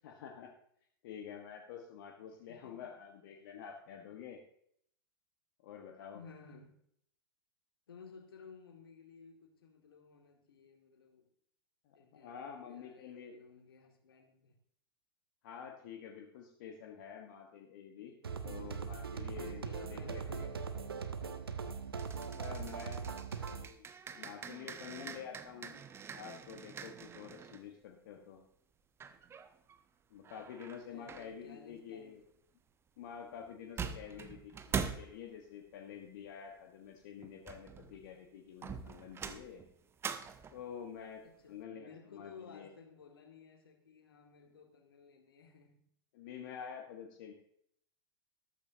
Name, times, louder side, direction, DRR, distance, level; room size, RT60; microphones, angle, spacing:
voice 1, 0.0-0.5 1.0-4.4 5.6-6.2 11.8-13.4 15.4-19.6 19.9-20.2 22.2-23.8 24.1-25.8 26.1-28.4 30.1-32.2 33.0-39.6 40.5-41.2 41.5-42.7 46.1-47.3, left 8 dB, 50° left, 1.6 m, -48 dB
voice 2, 2.3-2.9 6.1-6.7 7.9-11.3 11.9-14.5 19.4-21.4 30.9-32.2 34.0-34.5 41.2-45.9, left 5 dB, 70° left, 2.5 m, -56 dB
sound 1, 18.2-23.7, right 6 dB, 75° right, 1.1 m, -40 dB
sound 2, 22.0-27.7 29.0-29.8 30.2-31.3 33.4-33.5 33.8-35.2 37.2-38.1 38.6-40.7, right 6 dB, 20° right, 1.0 m, -44 dB
14.0 x 13.5 x 2.9 m
figure-of-eight pair, 95°, 13 cm